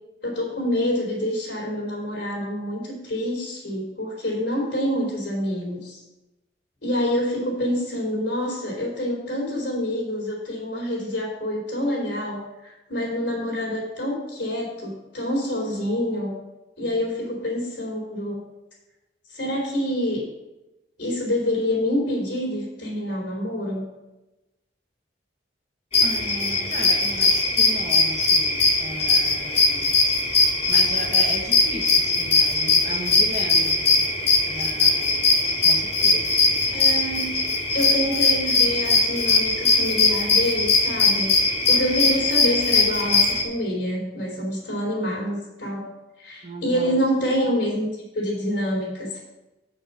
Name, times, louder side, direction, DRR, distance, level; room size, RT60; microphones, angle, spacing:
voice 1, 0.2-6.0 6.8-16.3 16.8-18.4 19.3-20.2 21.0-23.8 36.7-37.3 37.7-41.3 41.7-45.8 46.2-49.2, equal, 85° left, -3 dB, 4.0 m, -27 dB
sound 1, 25.9-43.4, left 3 dB, 35° left, 1.4 m, -20 dB
voice 2, 26.0-29.9 30.7-34.1 34.5-36.6 46.4-47.0, right 1 dB, 40° right, 2 dB, 1.3 m, -36 dB
8.1 x 6.6 x 5.7 m, 0.99 s
head